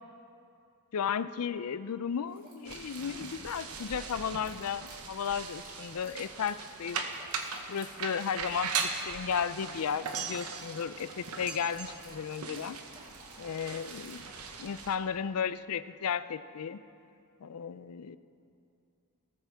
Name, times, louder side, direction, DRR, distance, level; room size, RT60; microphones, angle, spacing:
voice 1, 0.9-7.0 7.7-12.8 13.4-14.2 14.6-16.8 17.4-18.2, left 7 dB, 70° left, 14 dB, 0.4 m, -34 dB
sound 1, 2.3-14.3, right 2 dB, 40° right, 2.8 m, -57 dB
sound 2, 2.6-15.0, right 5 dB, 75° right, 1.1 m, -39 dB
19.5 x 13.5 x 3.6 m, 2.6 s
head